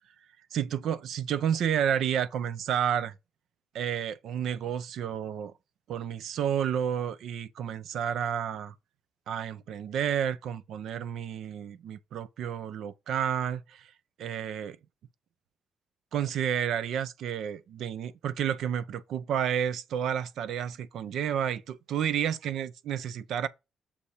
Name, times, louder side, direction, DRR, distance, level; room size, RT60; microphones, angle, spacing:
voice 1, 0.5-3.1 3.7-5.5 5.9-8.7 9.3-13.9 14.2-14.8 16.1-23.5, right 9 dB, 80° right, 0.6 m, -30 dB
6.7 x 5.5 x 4.9 m
cardioid pair, 150°, 0 cm